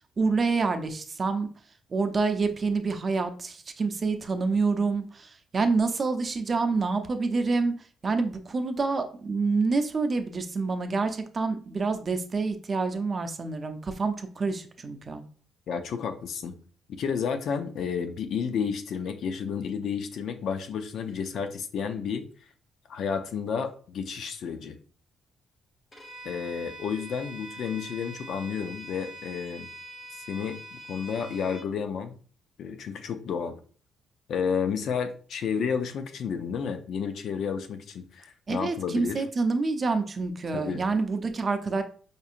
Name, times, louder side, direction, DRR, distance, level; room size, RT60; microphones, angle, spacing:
voice 1, 0.2-1.5 1.9-7.7 8.0-15.2 38.5-41.8, right 4 dB, 40° right, 7 dB, 0.5 m, -27 dB
voice 2, 15.7-16.6 16.9-22.2 22.9-24.8 26.2-29.7 30.3-32.1 32.6-33.5 34.3-39.2 40.5-40.8, left 6 dB, 70° left, 8 dB, 0.5 m, -31 dB
Bowed string instrument, 25.9-31.7, right 1 dB, 25° left, 1.1 m, -44 dB
5.1 x 2.7 x 2.4 m, 0.42 s
cardioid pair, 90°, 0 cm